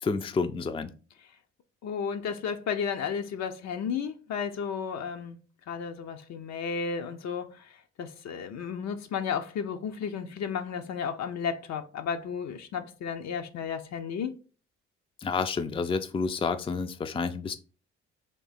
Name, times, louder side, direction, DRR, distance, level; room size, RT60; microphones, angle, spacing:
voice 1, 0.0-0.9 15.2-17.6, left 4 dB, 20° left, 0.4 m, -29 dB
voice 2, 1.8-5.4 5.7-14.3, left 6 dB, 65° left, 0.7 m, -33 dB
3.6 x 2.7 x 4.1 m
supercardioid pair, 55°, 30 cm